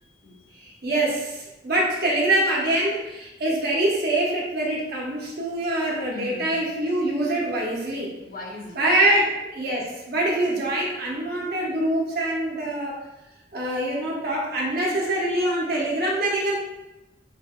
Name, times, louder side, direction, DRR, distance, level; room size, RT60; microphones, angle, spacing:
voice 1, 0.0-0.4 6.1-6.7 8.1-9.2, left 2 dB, 50° left, -2 dB, 0.9 m, -40 dB
voice 2, 0.6-8.1 8.8-13.0 13.5-16.5, right 1 dB, 55° right, -4 dB, 1.1 m, -24 dB
6.8 x 2.6 x 2.4 m, 0.98 s
head